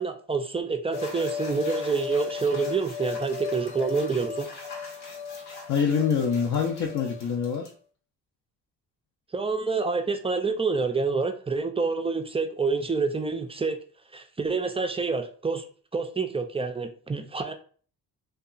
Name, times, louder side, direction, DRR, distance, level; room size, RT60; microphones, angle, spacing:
voice 1, 0.0-4.5 9.3-13.8 14.1-15.6 15.9-17.5, right 4 dB, 15° right, 6 dB, 0.3 m, -27 dB
sound 1, 0.9-7.7, left 6 dB, 80° left, 1.2 m, -36 dB
voice 2, 5.7-7.7, left 6 dB, 50° left, 0 dB, 0.5 m, -25 dB
2.7 x 2.3 x 2.4 m, 0.42 s
cardioid pair, 70°, 39 cm